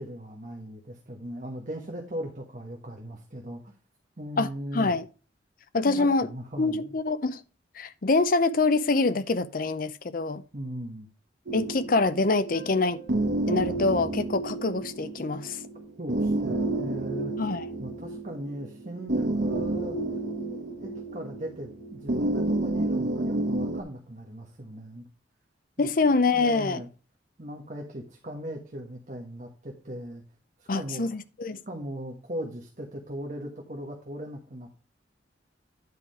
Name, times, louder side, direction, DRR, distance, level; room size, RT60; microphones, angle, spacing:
voice 1, 0.0-3.7 4.2-4.9 5.8-7.0 10.5-11.1 16.0-17.4 17.8-20.0 20.5-25.1 25.8-25.9 26.3-26.9 27.4-30.2 30.6-31.0 31.6-34.7, right 1 dB, 40° right, 1.3 m, -38 dB
voice 2, 4.7-5.0 5.7-6.3 6.6-7.4 7.8-10.4 11.5-13.0 13.5-15.6 17.4-17.7 25.8-26.8 30.7-31.6, left 3 dB, 45° left, 0.6 m, -25 dB
sound 1, 11.5-23.8, right 2 dB, 60° right, 1.1 m, -30 dB
sound 2, 12.5-15.7, right 3 dB, 65° left, 3.0 m, -52 dB
9.6 x 4.9 x 4.8 m
head